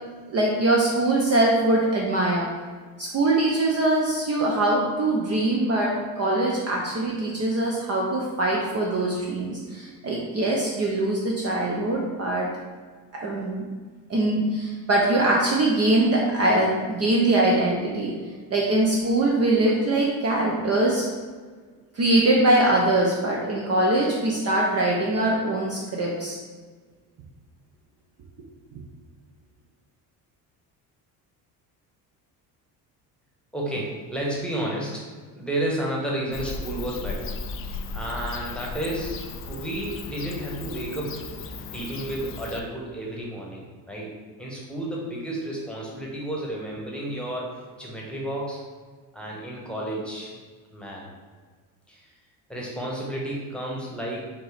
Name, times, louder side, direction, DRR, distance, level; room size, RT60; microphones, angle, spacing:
voice 1, 0.3-2.5 3.0-12.6 13.1-13.6 14.1-18.1 18.5-21.1 21.9-26.4, right 2 dB, 30° right, -3 dB, 0.7 m, -22 dB
voice 2, 33.5-35.1 35.3-37.3 37.7-39.2 39.4-41.3 41.7-48.6 49.1-50.3 50.7-51.1 51.9-52.1 52.5-54.2, right 1 dB, ahead, -4 dB, 1.2 m, -31 dB
Bird / Cricket, 36.3-42.6, left 3 dB, 30° left, 0.4 m, -36 dB
4.4 x 2.8 x 3.4 m, 1.5 s
hypercardioid pair, 70°, 47 cm